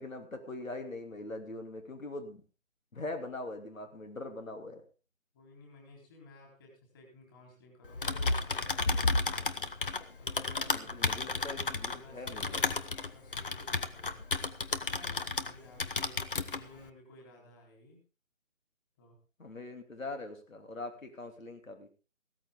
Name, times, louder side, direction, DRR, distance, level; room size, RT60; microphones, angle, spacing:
voice 1, 0.0-2.4 2.9-4.8 10.7-12.6 19.4-21.9, left 2 dB, 90° left, 6 dB, 3.0 m, -42 dB
voice 2, 5.3-12.6 13.1-14.2 14.8-16.2 16.5-18.0 19.0-19.2, left 2 dB, 20° left, 0 dB, 3.9 m, -56 dB
Typing, 7.8-15.5 15.8-16.6, left 3 dB, 45° left, 1.0 m, -32 dB
16.0 x 13.5 x 3.7 m, 0.34 s
figure-of-eight pair, 170°, 39 cm